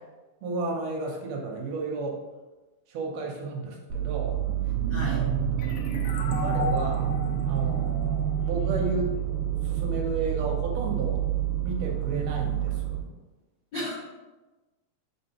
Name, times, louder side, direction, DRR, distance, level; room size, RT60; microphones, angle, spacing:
voice 1, 0.4-2.2 2.9-4.4 6.4-7.1 7.4-9.1 9.6-11.2 11.6-13.0, right 3 dB, 75° right, 0 dB, 1.7 m, -32 dB
sound 1, 3.9-13.0, right 10 dB, 90° right, 1.3 m, -28 dB
voice 2, 4.9-5.3 13.7-13.9, left 1 dB, 45° left, -13 dB, 1.8 m, -32 dB
sound 2, 5.6-9.0, left 5 dB, 80° left, 1.6 m, -36 dB
4.2 x 3.9 x 2.8 m, 1.1 s
omnidirectional pair, 3.4 m